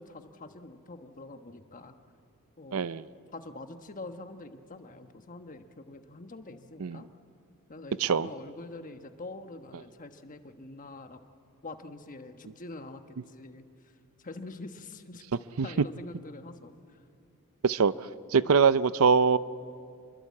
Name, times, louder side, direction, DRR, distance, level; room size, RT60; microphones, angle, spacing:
voice 1, 0.0-1.9 2.6-2.9 3.3-7.1 7.7-11.2 11.6-13.0 13.3-13.7 14.2-15.2 15.6-17.0, left 2 dB, 40° left, 7 dB, 1.3 m, -45 dB
voice 2, 2.7-3.0 6.8-7.0 8.0-8.3 15.6-15.7 17.6-17.9 18.3-19.4, right 5 dB, 70° right, 16 dB, 0.6 m, -23 dB
26.5 x 23.0 x 8.5 m, 2.4 s
head